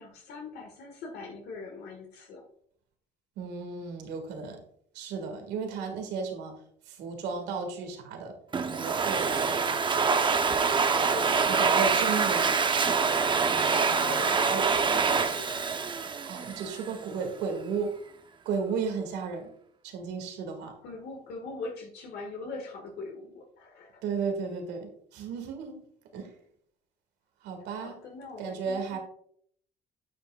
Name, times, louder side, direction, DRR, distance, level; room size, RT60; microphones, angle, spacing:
voice 1, 0.0-2.4 11.0-12.6 13.6-15.7 20.6-24.0 27.7-29.0, left 3 dB, 70° left, 2 dB, 1.5 m, -41 dB
voice 2, 3.4-4.6 4.9-6.6 6.9-8.3 8.7-9.8 11.5-12.6 13.5-14.2 14.5-14.6 16.3-17.9 18.5-19.5 19.8-20.7 24.0-25.8 26.1-26.3 27.4-28.0 28.4-29.0, right 5 dB, 85° right, 4 dB, 1.9 m, -34 dB
Domestic sounds home sounds, 8.5-17.0, right 5 dB, 30° right, 0.7 m, -25 dB
8.7 x 7.3 x 2.3 m, 0.63 s
cardioid pair, 110°, 17 cm